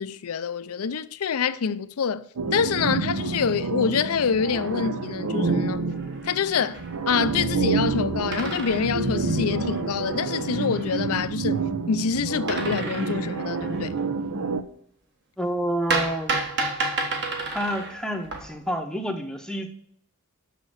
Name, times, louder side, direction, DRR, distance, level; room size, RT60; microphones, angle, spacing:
voice 1, 0.0-5.8 6.2-14.0, left 6 dB, 75° left, 0.5 m, -26 dB
sound 1, 2.4-14.6, right 3 dB, 80° right, 0.7 m, -28 dB
sound 2, 4.2-5.2 5.6-5.7 5.8-7.0 8.3-11.0 12.5-14.0 15.9-18.8, right 3 dB, 50° right, 1.5 m, -32 dB
voice 2, 15.4-16.4 17.5-19.7, equal, 5° left, 0.8 m, -29 dB
6.6 x 6.6 x 6.3 m
head